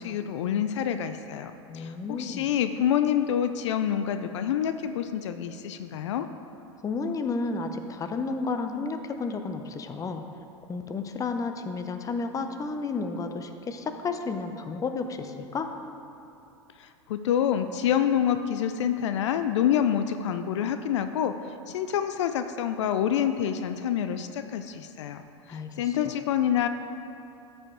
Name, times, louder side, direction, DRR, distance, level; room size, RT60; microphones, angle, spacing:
voice 1, 0.0-6.3 16.8-21.3 21.7-25.2 25.5-26.7, left 9 dB, 70° left, 9 dB, 0.4 m, -27 dB
voice 2, 1.7-2.5 6.8-10.2 10.7-15.7 25.5-26.1, left 4 dB, 20° left, 7 dB, 0.6 m, -32 dB
13.0 x 4.9 x 3.8 m, 2.8 s
hypercardioid pair, 90°, 16 cm